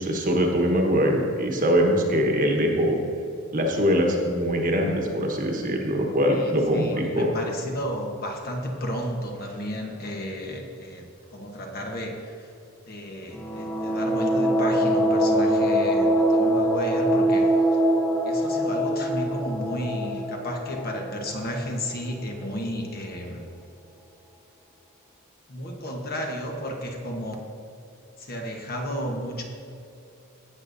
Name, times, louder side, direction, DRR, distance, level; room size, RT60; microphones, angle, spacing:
voice 1, 0.0-3.0 3.5-7.3, equal, 40° right, 1 dB, 1.2 m, -22 dB
voice 2, 6.3-12.5 12.9-17.5 18.2-23.4 25.5-27.4 28.2-29.4, equal, 45° left, 1 dB, 1.1 m, -33 dB
sound 1, 13.3-21.9, right 1 dB, 10° left, 0.7 m, -23 dB
14.5 x 8.1 x 2.6 m, 2.7 s
head